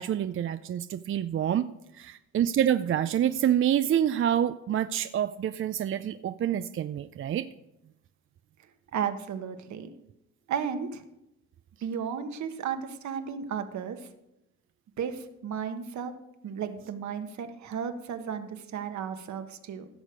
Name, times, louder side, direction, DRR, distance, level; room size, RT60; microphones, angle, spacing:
voice 1, 0.0-1.7 1.9-7.5, right 10 dB, 45° right, 11 dB, 0.5 m, -27 dB
voice 2, 8.9-9.9 10.5-11.0 11.8-14.0 15.0-16.1 16.4-19.9, right 7 dB, 70° right, 8 dB, 1.2 m, -34 dB
16.0 x 6.4 x 5.1 m, 0.87 s
cardioid pair, 90°, 30 cm